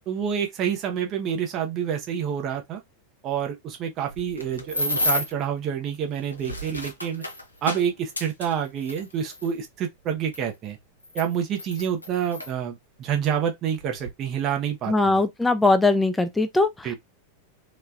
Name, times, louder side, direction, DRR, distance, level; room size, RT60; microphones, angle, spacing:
voice 1, 0.1-2.8 3.2-7.2 7.6-10.8 11.1-15.2 16.8-17.0, right 8 dB, 35° right, 0.7 m, -28 dB
sound 1, 4.1-5.4 6.2-9.5 10.3-10.4 11.0-12.5 13.3-13.4 13.8-14.1, left 1 dB, 90° left, 0.5 m, -31 dB
voice 2, 14.9-16.9, left 2 dB, 10° left, 0.4 m, -21 dB
3.1 x 2.2 x 2.5 m
figure-of-eight pair, 90°, 0 cm